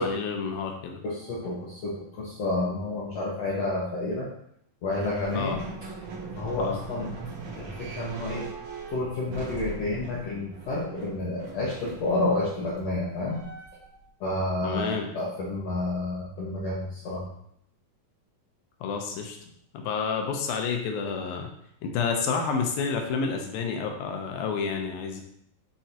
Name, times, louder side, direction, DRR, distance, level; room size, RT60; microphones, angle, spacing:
voice 1, 0.0-1.0 5.3-5.6 6.6-6.8 14.6-15.1 18.8-19.4 19.7-21.5 21.8-25.2, left 5 dB, 80° left, 3 dB, 2.6 m, -29 dB
voice 2, 1.0-4.3 4.8-5.6 6.4-7.1 7.6-8.5 8.9-13.4 14.2-17.2, left 2 dB, 60° left, -6 dB, 1.9 m, -30 dB
sound 1, 4.9-14.0, right 3 dB, 65° right, 3.0 m, -40 dB
7.8 x 5.7 x 2.9 m, 0.71 s
omnidirectional pair, 4.1 m